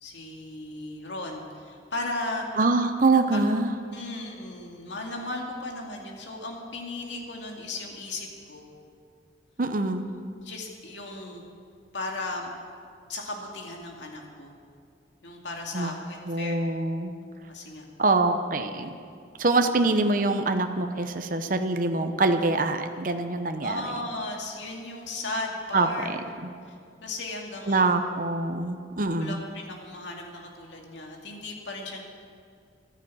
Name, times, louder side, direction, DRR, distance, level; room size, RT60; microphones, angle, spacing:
voice 1, 0.0-2.5 3.3-3.4 3.9-8.7 10.4-11.4 11.9-12.5 13.1-14.5 15.2-16.6 17.5-17.8 23.6-26.1 26.7-26.8 27.0-28.0 29.2-32.0, left 2 dB, 85° left, 0 dB, 2.4 m, -36 dB
voice 2, 2.6-3.7 9.6-10.1 15.7-15.9 16.3-17.1 18.0-18.9 19.4-23.9 25.7-26.5 27.7-29.4, right 3 dB, 50° right, 7 dB, 0.8 m, -25 dB
12.0 x 10.5 x 8.5 m, 2.2 s
head